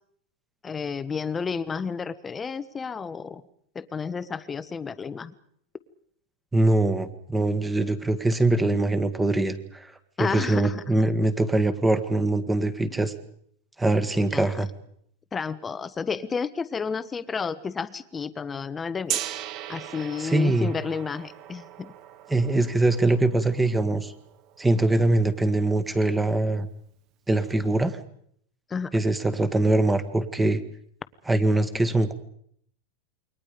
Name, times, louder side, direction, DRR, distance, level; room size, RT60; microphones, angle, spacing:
voice 1, 0.6-3.4 3.7-5.4 10.2-10.8 14.3-14.5 15.3-19.2 19.7-21.9 28.7-28.9, left 5 dB, 15° left, 13 dB, 1.1 m, -31 dB
voice 2, 6.5-9.9 10.2-13.1 13.8-14.7 20.2-20.7 22.3-24.1 24.6-26.7 27.3-28.0 28.9-30.6 31.3-32.1, right 2 dB, 10° right, 11 dB, 1.7 m, -23 dB
Gong, 19.1-25.0, right 12 dB, 40° right, 1.3 m, -38 dB
28.5 x 23.5 x 5.2 m, 0.66 s
supercardioid pair, 155°, 0 cm